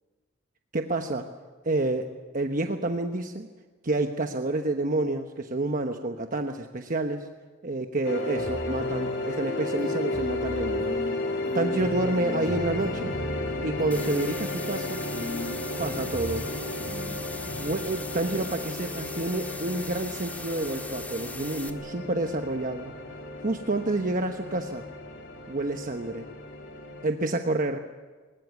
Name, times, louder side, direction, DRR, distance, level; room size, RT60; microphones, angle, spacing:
voice 1, 0.7-1.3 1.6-3.5 3.8-7.3 7.6-11.0 11.5-13.1 13.6-15.0 15.8-16.5 17.6-22.9 23.4-24.8 25.5-26.3 27.0-27.9, right 2 dB, 45° right, 5 dB, 1.0 m, -29 dB
sound 1, 8.0-27.1, left 2 dB, 70° left, 3.0 m, -33 dB
sound 2, 8.3-9.1 9.8-11.1 11.4-14.1 15.1-15.5 15.8-17.1 17.4-17.8, left 1 dB, 20° right, 7.4 m, -38 dB
sound 3, 13.9-21.7, left 2 dB, 10° left, 1.6 m, -40 dB
21.5 x 20.0 x 8.3 m, 1.4 s
head